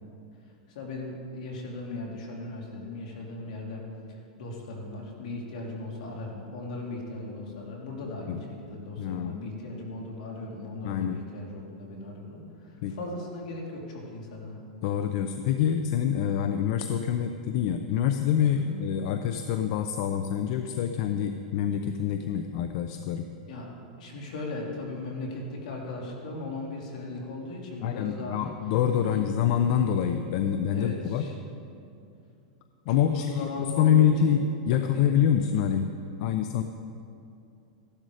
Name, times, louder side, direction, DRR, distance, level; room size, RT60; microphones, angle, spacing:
voice 1, 0.7-14.6 18.6-18.8 23.5-23.7 24.0-28.5 29.0-29.3 30.5-31.4 32.9-34.4 34.7-35.1, left 2 dB, 75° left, -1 dB, 3.2 m, -38 dB
voice 2, 9.0-9.4 10.8-11.2 12.8-12.9 14.8-23.3 27.8-31.2 32.9-35.9 36.2-36.6, left 9 dB, 55° left, 8 dB, 0.6 m, -26 dB
15.0 x 12.0 x 5.0 m, 2.6 s
supercardioid pair, 145°, 4 cm